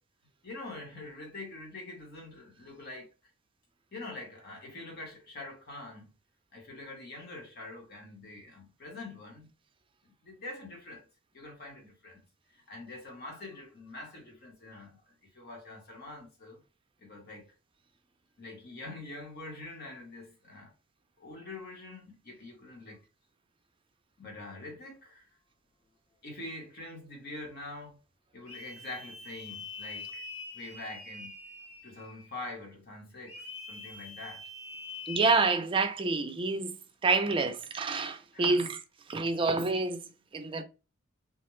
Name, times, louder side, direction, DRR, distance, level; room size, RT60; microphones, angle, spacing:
voice 1, 0.4-3.1 3.9-6.1 6.5-9.5 10.0-11.1 11.3-12.2 12.5-15.0 15.3-16.6 17.0-17.5 18.4-20.7 21.2-23.0 24.2-25.2 26.2-28.0 28.3-30.2 30.5-31.4 31.8-34.5 38.3-38.7 40.3-40.6, left 2 dB, 50° left, 1.0 m, -45 dB
sound 1, 28.5-32.3 33.3-35.4, left 3 dB, 30° left, 0.7 m, -44 dB
voice 2, 35.1-36.7 37.0-38.8 39.1-40.1 40.3-40.6, right 3 dB, 25° right, 0.4 m, -28 dB
2.3 x 2.1 x 3.0 m
head